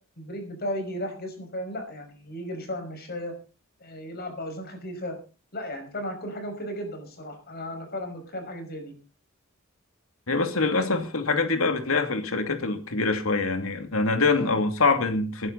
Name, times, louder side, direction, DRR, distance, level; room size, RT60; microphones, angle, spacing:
voice 1, 0.2-3.3 3.8-5.2 5.5-8.9 14.2-14.5, equal, 50° left, 5.8 m, -35 dB
voice 2, 10.3-15.5, left 3 dB, 80° left, 2.5 m, -24 dB
21.0 x 11.0 x 4.1 m
head